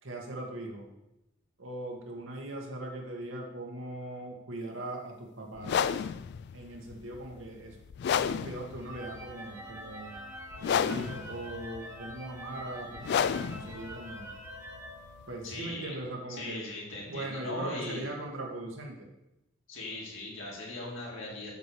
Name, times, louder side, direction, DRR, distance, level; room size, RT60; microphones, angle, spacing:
voice 1, 0.0-0.9 1.6-6.1 6.5-7.8 8.2-10.2 10.6-14.3 15.3-16.7 17.1-19.1, right 1 dB, 85° right, 1 dB, 1.7 m, -40 dB
sound 1, 5.6-15.5, left 7 dB, 60° left, 0.3 m, -32 dB
sound 2, 8.8-15.8, equal, 15° right, 1.4 m, -46 dB
voice 2, 15.4-16.0 16.3-18.1 19.7-21.5, left 2 dB, 85° left, -4 dB, 3.0 m, -39 dB
8.0 x 4.7 x 6.8 m, 0.92 s
head